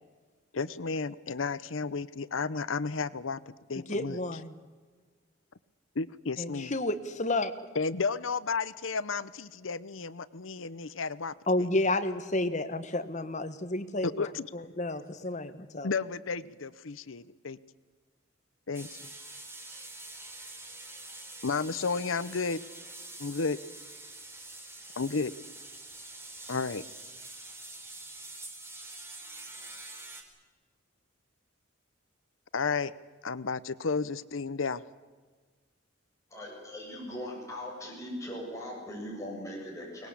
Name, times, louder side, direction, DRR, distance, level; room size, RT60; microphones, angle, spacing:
voice 1, 0.5-3.4 3.7-4.2 6.0-6.8 7.7-11.3 14.0-14.5 15.8-17.6 18.7-19.0 21.4-22.6 23.2-23.6 25.0-25.3 26.5-26.8 32.5-32.9 33.2-34.8, left 4 dB, 80° left, 16 dB, 0.8 m, -32 dB
voice 2, 3.7-4.5 6.4-7.5 11.5-14.2 14.5-15.9, left 2 dB, 35° left, 9 dB, 1.5 m, -31 dB
sound 1, 18.7-30.2, right 2 dB, 15° right, 3.4 m, -46 dB
voice 3, 36.3-40.1, equal, 15° left, -3 dB, 7.8 m, -40 dB
23.5 x 20.0 x 8.5 m, 1.4 s
head